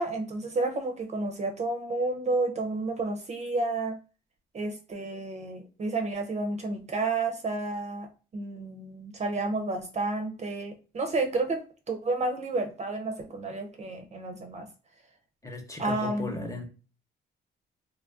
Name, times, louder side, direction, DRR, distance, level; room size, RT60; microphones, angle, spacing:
voice 1, 0.0-4.0 4.5-14.7 15.8-16.4, right 2 dB, 35° right, 4 dB, 0.5 m, -31 dB
voice 2, 15.4-16.6, left 2 dB, 15° left, 4 dB, 0.7 m, -36 dB
2.9 x 2.3 x 2.5 m, 0.34 s
cardioid pair, 90°, 20 cm